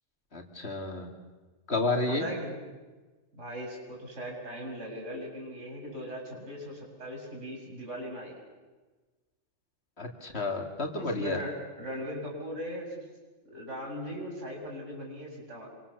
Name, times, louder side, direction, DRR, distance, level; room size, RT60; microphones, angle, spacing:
voice 1, 0.3-1.1 1.7-2.3 10.0-11.4, left 2 dB, 55° left, 3 dB, 3.0 m, -31 dB
voice 2, 1.9-2.5 3.3-8.3 11.0-13.0 13.5-15.7, equal, 75° right, -1 dB, 7.4 m, -39 dB
28.0 x 25.0 x 7.1 m, 1.3 s
omnidirectional pair, 1.3 m